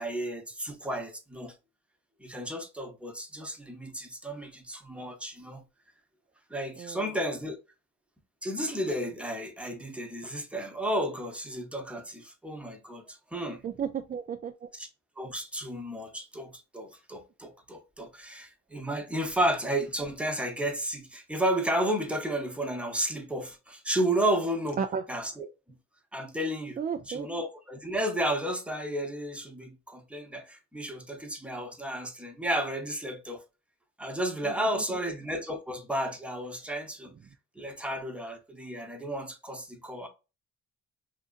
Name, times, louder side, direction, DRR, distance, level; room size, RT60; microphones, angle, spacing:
voice 1, 0.0-1.5 2.2-5.6 6.5-7.6 8.4-13.6 14.7-14.9 15.2-24.8 25.1-25.8 26.1-26.8 27.1-33.4 34.0-37.1 37.6-40.1, right 1 dB, 5° right, 0.8 m, -32 dB
voice 2, 13.6-14.7 24.8-25.0 26.8-27.3 34.4-35.0, right 7 dB, 30° right, 0.4 m, -34 dB
2.7 x 2.5 x 2.4 m
cardioid pair, 90°, 30 cm